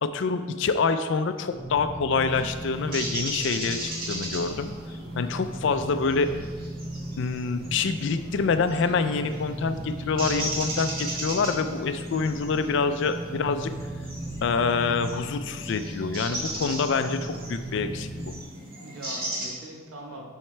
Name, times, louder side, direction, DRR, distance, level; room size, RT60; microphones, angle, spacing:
voice 1, 0.0-4.7 5.1-6.3 7.2-13.7 14.4-18.3, left 4 dB, 55° left, 10 dB, 0.4 m, -26 dB
sound 1, 1.5-18.5, right 1 dB, 5° right, 0.4 m, -37 dB
sound 2, 2.3-19.4, right 1 dB, 45° right, 1.7 m, -37 dB
voice 2, 14.6-15.0 18.8-20.3, right 1 dB, 85° right, 0 dB, 1.2 m, -42 dB
7.3 x 5.6 x 3.3 m, 1.5 s
head